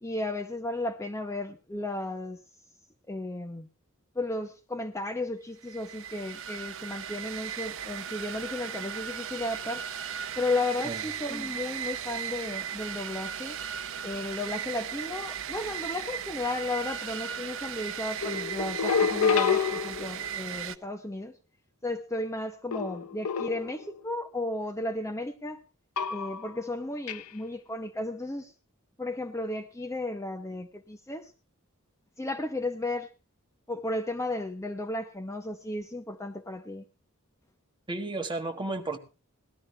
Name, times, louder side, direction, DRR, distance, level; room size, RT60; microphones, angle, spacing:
voice 1, 0.0-2.4 3.1-3.7 4.1-9.8 10.4-13.6 14.0-21.4 21.8-25.6 26.1-28.5 29.0-31.3 32.2-33.1 33.7-36.8, left 2 dB, 15° left, 0.8 m, -34 dB
sound 1, 5.6-20.8, right 9 dB, 65° right, 0.7 m, -37 dB
sound 2, 18.2-20.4 22.7-24.0 26.0-26.6 27.1-27.3, left 6 dB, 90° left, 0.6 m, -28 dB
voice 2, 37.9-39.0, right 2 dB, 20° right, 1.5 m, -33 dB
18.5 x 12.5 x 3.3 m
head